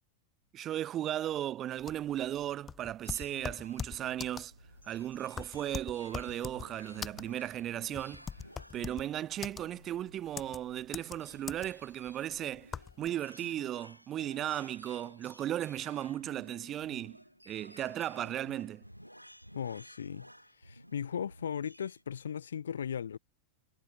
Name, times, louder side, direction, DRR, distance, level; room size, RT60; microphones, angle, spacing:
voice 1, 0.5-4.5 4.8-8.3 8.7-17.2 17.5-18.8, right 12 dB, 30° right, 1.4 m, -36 dB
sound 1, 1.8-13.1, left 7 dB, 20° left, 2.1 m, -42 dB
sound 2, 3.0-22.0, equal, 90° left, 6.4 m, -55 dB
voice 2, 19.5-20.3 20.6-23.2, left 8 dB, 65° left, 0.8 m, -37 dB
figure-of-eight pair, 90°, 0 cm